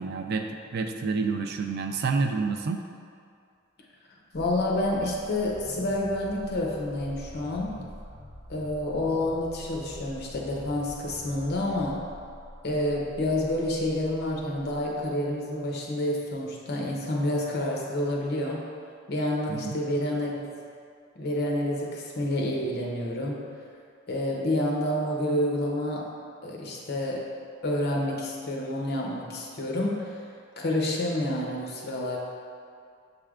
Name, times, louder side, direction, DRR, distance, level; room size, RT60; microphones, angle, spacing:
voice 1, 0.0-2.8 19.5-19.8, right 4 dB, 50° right, 5 dB, 0.3 m, -29 dB
voice 2, 4.3-7.8 8.5-12.0 12.6-18.6 19.1-20.5 21.2-23.5 24.1-26.1 26.4-27.3 27.6-30.2 30.6-32.2, left 1 dB, 50° left, -1 dB, 0.7 m, -28 dB
sound 1, 4.3-15.2, equal, 30° left, 1.1 m, -45 dB
6.7 x 3.3 x 2.4 m, 2.3 s
head